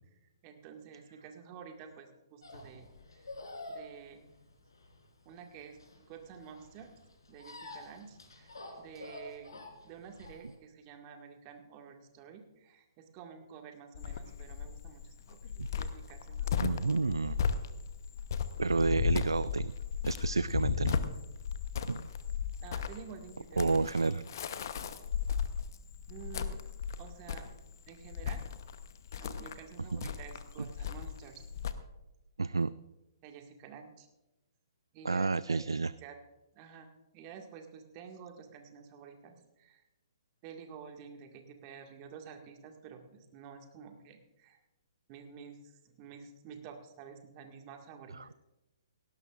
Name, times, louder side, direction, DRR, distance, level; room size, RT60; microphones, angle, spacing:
voice 1, 0.4-2.9 3.7-4.3 5.3-6.9 7.3-16.7 22.6-23.8 26.1-26.7 27.0-27.5 27.9-28.4 29.2-31.5 33.2-34.1 34.9-35.6 36.0-36.2 36.6-39.9 40.4-44.6 45.1-48.3, right 7 dB, 30° right, 4 dB, 1.9 m, -50 dB
sound 1, 2.4-10.5, left 2 dB, 75° left, 3.8 m, -48 dB
Cricket, 14.0-31.7, left 7 dB, 55° left, 0.9 m, -35 dB
voice 2, 16.6-17.5 18.6-19.7 20.0-21.0 21.9-22.1 23.6-24.3 29.9-30.1 30.6-30.7 32.4-32.7 35.0-35.9 48.1-48.3, right 3 dB, 80° right, 18 dB, 0.3 m, -30 dB
18.0 x 17.5 x 2.5 m, 0.98 s
figure-of-eight pair, 125°, 2 cm